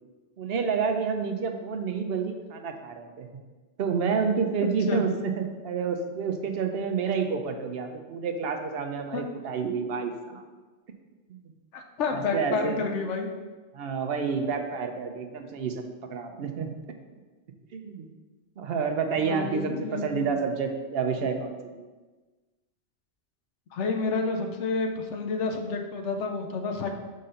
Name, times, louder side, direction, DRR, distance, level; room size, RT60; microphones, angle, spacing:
voice 1, 0.4-3.3 3.8-10.4 11.3-11.4 12.1-12.8 13.7-16.8 17.7-18.1 18.6-21.8, right 5 dB, 60° right, 5 dB, 0.9 m, -29 dB
voice 2, 11.7-13.3 19.2-20.3 23.7-26.9, left 4 dB, 90° left, 4 dB, 1.0 m, -29 dB
5.2 x 3.8 x 5.5 m, 1.3 s
omnidirectional pair, 1.2 m